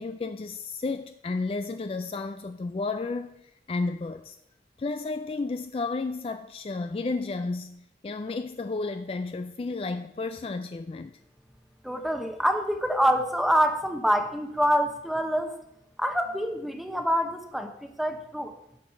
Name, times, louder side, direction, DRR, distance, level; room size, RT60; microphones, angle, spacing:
voice 1, 0.0-4.4 4.8-11.2, left 3 dB, 35° left, 0.3 m, -32 dB
voice 2, 11.8-15.5 16.0-18.5, equal, ahead, 0.9 m, -26 dB
16.0 x 6.3 x 4.4 m
head